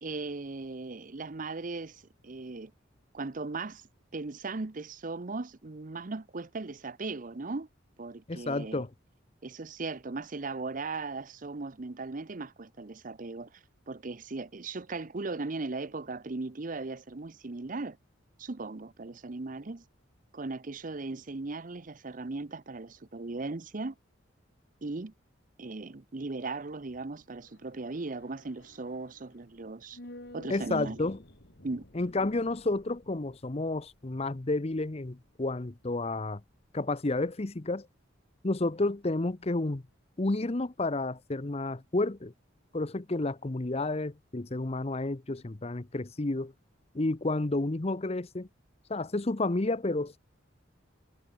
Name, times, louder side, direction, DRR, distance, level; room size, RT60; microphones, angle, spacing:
voice 1, 0.0-2.7 3.1-3.9 4.1-7.7 8.0-8.8 9.4-18.0 18.4-19.8 20.3-23.9 24.8-25.1 25.6-30.0 30.3-31.0 31.6-31.8, right 3 dB, 45° right, 0.7 m, -38 dB
voice 2, 8.3-8.9 30.5-31.2 31.9-36.4 36.7-37.9 38.4-39.8 40.2-42.3 42.7-46.5 46.9-48.5 48.9-50.2, left 2 dB, 30° left, 0.8 m, -31 dB
sound 1, 26.6-37.0 37.3-37.4, left 1 dB, 60° left, 3.8 m, -55 dB
head